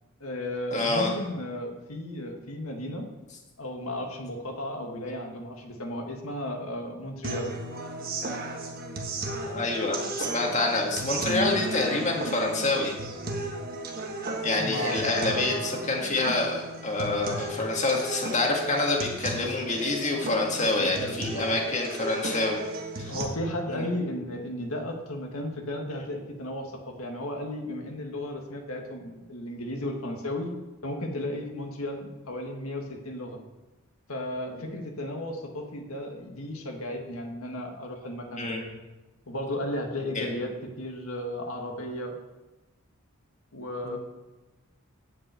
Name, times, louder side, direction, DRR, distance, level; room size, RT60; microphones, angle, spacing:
voice 1, 0.2-3.1 3.6-7.5 14.6-15.5 20.6-21.5 23.1-30.6 30.8-33.4 34.1-38.6 39.3-42.1 43.5-44.0, left 1 dB, 80° left, 3 dB, 1.6 m, -34 dB
voice 2, 0.7-1.2 9.4-12.9 14.4-22.6 23.0-23.2 23.7-23.9 34.6-34.7 38.4-38.7 40.2-40.3 43.8-44.0, left 2 dB, 35° left, 0 dB, 1.9 m, -27 dB
sound 1, 7.2-23.3, right 2 dB, 45° right, 1.4 m, -34 dB
9.8 x 5.5 x 8.0 m, 1.1 s
head